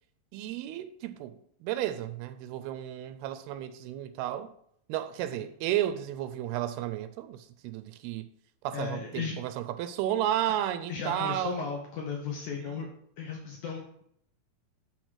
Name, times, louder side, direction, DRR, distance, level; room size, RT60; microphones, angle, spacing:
voice 1, 0.3-4.5 4.9-8.3 8.6-11.7 12.6-12.8, right 12 dB, 85° right, 2.4 m, -33 dB
voice 2, 8.7-9.4 10.4-10.5 10.9-12.9 13.2-14.0, left 6 dB, 70° left, 1.9 m, -36 dB
9.9 x 3.7 x 6.3 m
omnidirectional pair, 4.6 m